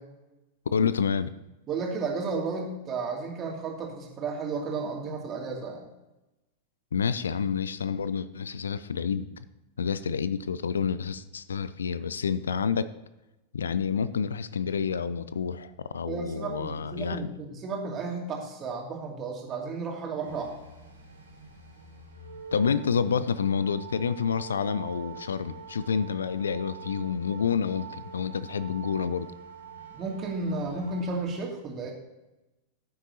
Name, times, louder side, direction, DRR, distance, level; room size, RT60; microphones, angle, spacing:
voice 1, 0.7-1.3 6.9-9.3 9.8-12.9 13.5-17.3 22.5-29.3, left 6 dB, 70° left, 16 dB, 0.4 m, -28 dB
voice 2, 1.7-5.9 16.1-20.5 29.9-31.9, right 4 dB, 30° right, 0 dB, 2.6 m, -33 dB
sound 1, 20.2-31.3, right 5 dB, 80° right, 2.9 m, -46 dB
15.0 x 8.6 x 2.8 m, 1.0 s
figure-of-eight pair, 90°, 0 cm